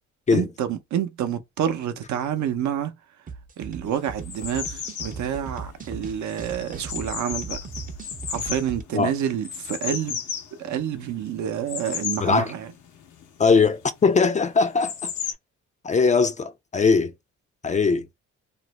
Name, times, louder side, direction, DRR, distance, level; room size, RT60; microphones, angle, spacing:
voice 1, 0.3-2.9 3.6-7.6 8.3-10.2 10.6-12.7, right 9 dB, 70° right, 0.7 m, -28 dB
sound 1, 3.3-8.8, right 5 dB, 30° right, 0.5 m, -38 dB
sound 2, 3.9-15.3, left 8 dB, 80° left, 0.7 m, -35 dB
voice 2, 12.2-12.5 13.4-15.1 15.8-17.1 17.6-18.1, left 4 dB, 25° left, 0.3 m, -20 dB
2.5 x 2.0 x 3.0 m
cardioid pair, 90°, 30 cm